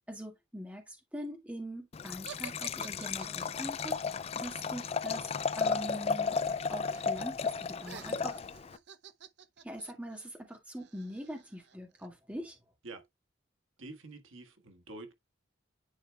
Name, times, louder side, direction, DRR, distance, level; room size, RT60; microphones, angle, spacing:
voice 1, 0.1-4.0 4.3-5.3 5.5-6.4 6.7-8.4 9.6-12.6, equal, 5° right, 1.8 m, -43 dB
Liquid, 1.9-8.8, left 5 dB, 30° left, 0.3 m, -34 dB
sound 1, 2.2-6.3 6.5-7.1 7.4-12.1, right 7 dB, 55° right, 0.7 m, -52 dB
voice 2, 13.8-15.1, right 2 dB, 90° right, 1.5 m, -47 dB
10.5 x 4.5 x 2.2 m
head